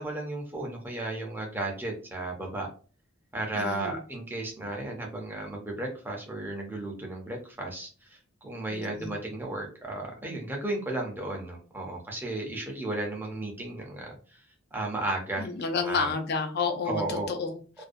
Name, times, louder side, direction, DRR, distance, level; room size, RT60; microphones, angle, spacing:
voice 1, 0.0-2.7 3.3-14.4 14.7-15.5 15.8-16.1 16.9-17.3 17.8-17.9, right 2 dB, 10° right, 0 dB, 0.5 m, -34 dB
voice 2, 3.5-4.0 8.7-9.1 15.4-17.8, left 4 dB, 50° left, 5 dB, 0.4 m, -31 dB
2.4 x 2.1 x 2.5 m, 0.38 s
head